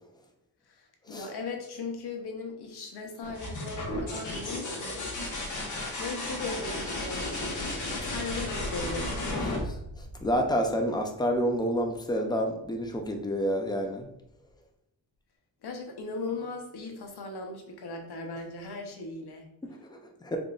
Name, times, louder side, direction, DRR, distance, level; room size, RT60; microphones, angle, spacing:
voice 1, 0.7-5.1 6.0-9.2 15.6-19.5, left 3 dB, 65° left, 3 dB, 0.8 m, -38 dB
sound 1, 3.2-10.8 12.6-13.1, left 1 dB, 45° left, 1.0 m, -34 dB
voice 2, 9.6-14.1 19.6-20.4, equal, 10° left, 3 dB, 0.4 m, -29 dB
3.7 x 3.7 x 2.3 m, 0.78 s
wide cardioid pair, 145°, 42 cm